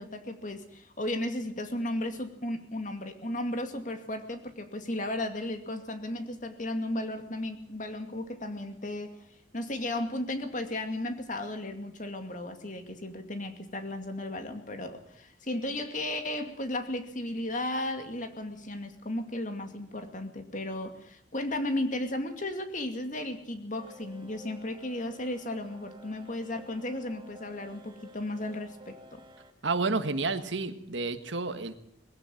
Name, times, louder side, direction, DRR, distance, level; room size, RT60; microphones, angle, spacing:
voice 1, 0.0-9.2 9.5-29.2, left 1 dB, 40° left, 7 dB, 2.4 m, -35 dB
sound 1, 23.7-29.5, left 1 dB, 25° right, 1.2 m, -52 dB
voice 2, 29.6-31.7, right 3 dB, 75° right, 10 dB, 1.6 m, -30 dB
20.5 x 16.0 x 7.8 m, 0.66 s
head